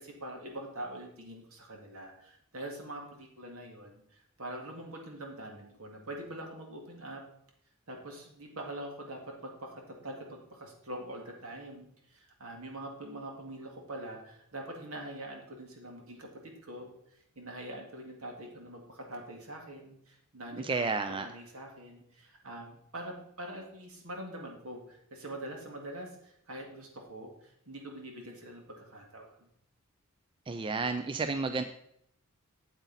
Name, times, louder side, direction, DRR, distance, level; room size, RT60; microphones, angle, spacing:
voice 1, 0.0-7.2 7.9-16.9 17.4-29.3, right 1 dB, 70° right, 2 dB, 2.0 m, -44 dB
voice 2, 20.5-21.3 30.5-31.6, right 4 dB, 25° right, 9 dB, 0.4 m, -31 dB
8.2 x 8.1 x 4.0 m, 0.73 s
head